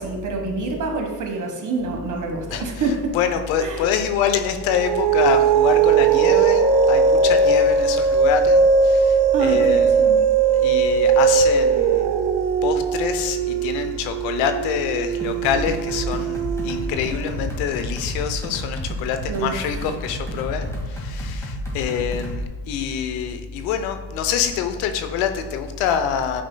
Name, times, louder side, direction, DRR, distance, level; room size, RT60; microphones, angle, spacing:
voice 1, 0.0-3.2 3.6-3.9 9.3-10.2 19.3-19.6, right 3 dB, 40° right, 2 dB, 1.3 m, -26 dB
voice 2, 3.1-10.2 10.6-12.1 12.6-16.4 16.6-26.4, left 7 dB, 85° left, 8 dB, 0.7 m, -25 dB
sound 1, 4.7-17.5, right 5 dB, 60° right, 0.6 m, -19 dB
sound 2, 15.2-22.5, equal, 5° left, 1.8 m, -31 dB
8.5 x 5.1 x 2.2 m, 1.4 s
supercardioid pair, 90°, 46 cm